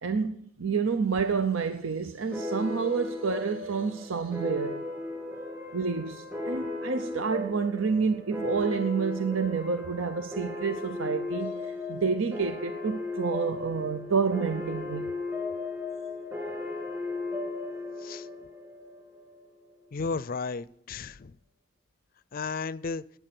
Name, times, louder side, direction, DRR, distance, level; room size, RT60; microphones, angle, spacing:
voice 1, 0.0-4.8 5.7-15.1, right 5 dB, 80° right, 0.7 m, -29 dB
sound 1, 2.3-19.4, left 2 dB, 15° right, 3.1 m, -36 dB
voice 2, 19.9-21.3 22.3-23.0, left 4 dB, 45° left, 0.4 m, -33 dB
18.5 x 9.2 x 6.0 m
head